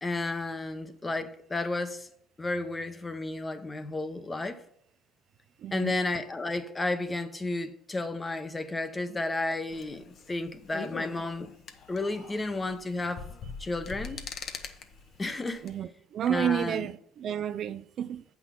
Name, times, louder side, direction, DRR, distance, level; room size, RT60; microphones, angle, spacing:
voice 1, 0.0-2.1 2.4-4.6 5.7-11.5 11.9-13.3 13.6-14.2 15.2-15.6 16.3-16.9, left 2 dB, 20° left, 0.9 m, -32 dB
voice 2, 5.6-6.0 15.6-18.2, right 9 dB, 50° right, 0.4 m, -31 dB
sound 1, 9.7-15.8, left 5 dB, 50° left, 1.0 m, -43 dB
8.1 x 5.9 x 5.8 m
cardioid pair, 105°, 0 cm